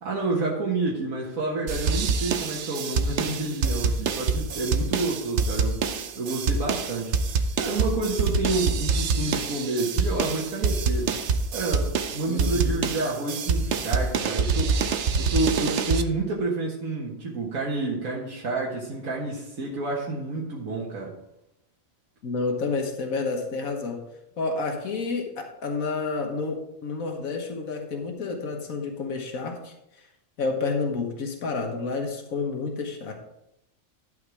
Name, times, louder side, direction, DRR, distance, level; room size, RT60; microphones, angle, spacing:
voice 1, 0.0-5.8 6.2-7.1 7.6-11.1 11.5-14.8 15.1-21.1, right 3 dB, 85° right, -3 dB, 1.9 m, -29 dB
sound 1, 1.7-16.0, right 4 dB, 60° right, 1.0 m, -26 dB
voice 2, 12.3-12.9 22.2-24.0 24.4-30.0 30.4-33.1, left 4 dB, 90° left, 2 dB, 1.6 m, -30 dB
11.0 x 5.8 x 4.8 m, 0.85 s
omnidirectional pair, 1.4 m